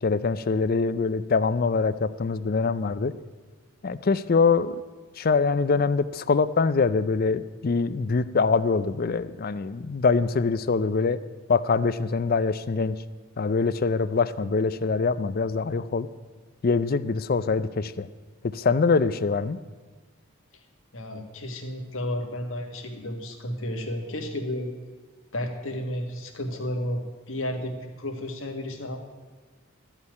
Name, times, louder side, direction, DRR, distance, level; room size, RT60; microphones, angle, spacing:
voice 1, 0.0-3.1 3.8-4.8 5.2-11.2 11.5-13.0 13.4-16.1 16.6-18.1 18.4-19.6, left 4 dB, 45° left, 15 dB, 0.4 m, -24 dB
voice 2, 20.9-24.7 25.3-27.0 27.3-29.0, left 1 dB, 60° left, 4 dB, 1.6 m, -32 dB
13.5 x 5.7 x 9.2 m, 1.3 s
head